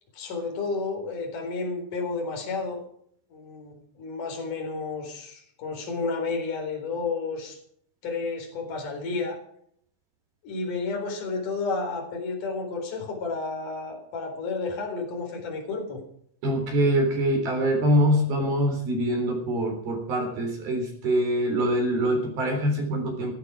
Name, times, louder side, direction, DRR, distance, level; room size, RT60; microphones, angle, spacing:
voice 1, 0.1-2.8 3.3-7.6 8.0-9.4 10.4-16.0, left 4 dB, 45° left, 2 dB, 5.4 m, -31 dB
voice 2, 16.4-23.3, equal, 55° right, 2 dB, 5.4 m, -24 dB
17.0 x 14.0 x 4.9 m, 0.65 s
omnidirectional pair, 5.3 m